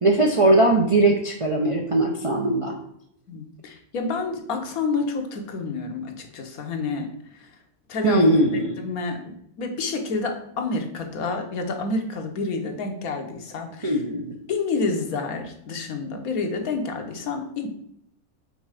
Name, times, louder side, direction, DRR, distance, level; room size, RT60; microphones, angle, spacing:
voice 1, 0.0-2.7 8.0-8.9 13.8-14.3, right 2 dB, 50° right, 1 dB, 0.4 m, -20 dB
voice 2, 3.3-7.1 7.3-7.5 7.9-8.3 8.8-14.0 14.5-17.7, left 4 dB, 85° left, 4 dB, 1.4 m, -29 dB
5.4 x 4.4 x 4.8 m, 0.74 s
omnidirectional pair, 1.5 m